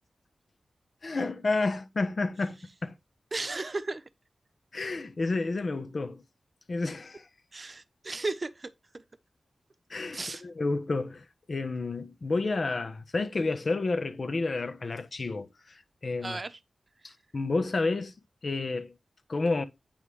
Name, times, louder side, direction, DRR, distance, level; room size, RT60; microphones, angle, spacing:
voice 1, 1.0-2.9 4.7-6.2 6.7-7.3 9.9-15.5 16.0-16.4 17.0-18.1 18.4-18.9 19.3-19.6, left 3 dB, 55° left, 1.2 m, -30 dB
voice 2, 3.3-4.0 7.5-8.7 10.1-10.4 16.2-16.6, right 3 dB, 40° right, 0.9 m, -34 dB
9.1 x 3.8 x 4.8 m
cardioid pair, 65°, 0 cm